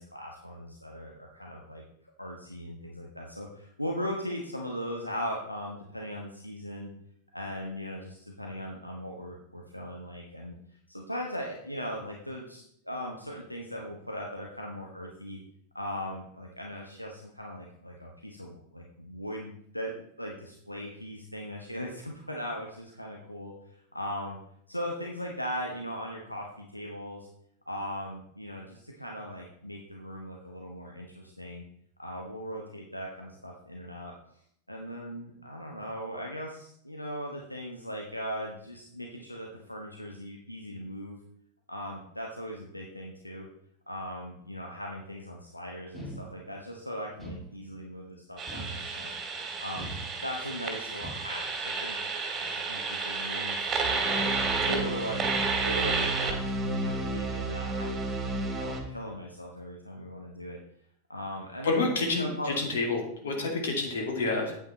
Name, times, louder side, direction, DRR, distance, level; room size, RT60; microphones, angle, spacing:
voice 1, 0.0-1.8 2.2-6.9 7.3-10.6 10.9-15.4 15.7-23.5 23.9-24.4 24.7-27.3 27.7-31.6 32.0-34.1 34.7-41.2 41.7-43.5 43.9-49.1 49.6-49.9 50.2-54.2 54.6-60.6 61.1-62.6, equal, 90° left, 0 dB, 1.1 m, -39 dB
sound 1, 45.9-46.7 47.2-48.0 48.5-49.3 49.7-50.5 51.0-51.6, right 1 dB, 5° left, 3.4 m, -43 dB
sound 2, 48.4-58.8, right 3 dB, 25° right, 2.1 m, -31 dB
voice 2, 61.6-64.6, left 3 dB, 60° left, 1 dB, 2.4 m, -29 dB
8.8 x 8.3 x 4.1 m, 0.69 s
figure-of-eight pair, 90°, 0 cm